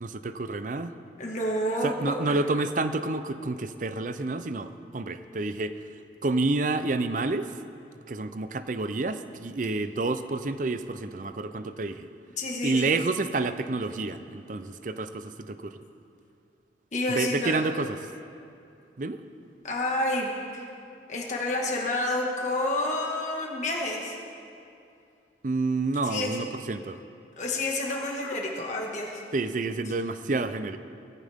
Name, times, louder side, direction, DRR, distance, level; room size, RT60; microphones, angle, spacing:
voice 1, 0.0-0.9 1.8-5.7 6.2-7.5 8.1-12.1 12.6-15.8 17.1-18.0 19.0-19.2 25.4-27.0 29.3-30.8, right 3 dB, 45° right, 11 dB, 0.5 m, -29 dB
voice 2, 1.2-2.4 12.4-12.9 16.9-17.6 19.6-20.6 21.1-24.2 26.0-26.4 27.3-29.2, left 1 dB, 40° left, -1 dB, 1.8 m, -29 dB
19.5 x 14.5 x 3.6 m, 2.6 s
head